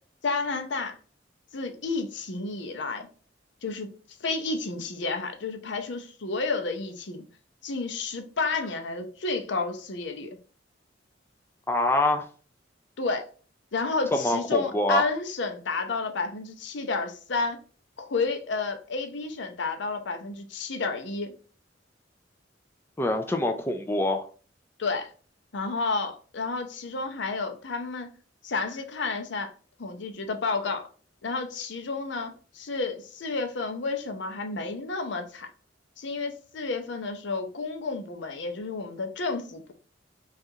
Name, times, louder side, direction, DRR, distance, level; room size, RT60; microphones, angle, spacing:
voice 1, 0.2-1.0 1.5-3.1 3.6-3.9 4.2-7.2 7.6-10.4 13.0-13.3 13.7-17.6 18.0-21.3 24.8-25.1 25.5-28.1 28.4-29.5 29.8-30.9 31.2-35.5 36.0-39.7, left 3 dB, 70° left, 0.6 m, -31 dB
voice 2, 11.7-12.3 14.2-15.0 23.0-24.3, left 1 dB, 10° left, 0.4 m, -25 dB
5.4 x 2.5 x 2.7 m
head